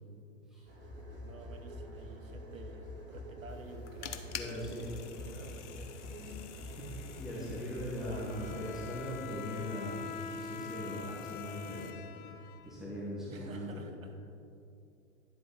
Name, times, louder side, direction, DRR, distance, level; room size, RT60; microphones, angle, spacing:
sound 1, 0.7-9.2, left 1 dB, 30° right, 2.1 m, -46 dB
voice 1, 1.2-7.6 8.0-8.7 13.3-14.1, right 4 dB, 75° right, 6 dB, 1.1 m, -51 dB
sound 2, 3.5-11.9, left 9 dB, 60° left, 0.8 m, -49 dB
voice 2, 4.3-4.9 6.8-11.9 12.6-13.8, left 1 dB, ahead, -8 dB, 2.1 m, -40 dB
Bowed string instrument, 8.1-13.1, left 6 dB, 25° left, 0.5 m, -45 dB
11.0 x 7.8 x 4.1 m, 2.6 s
figure-of-eight pair, 95°, 40 cm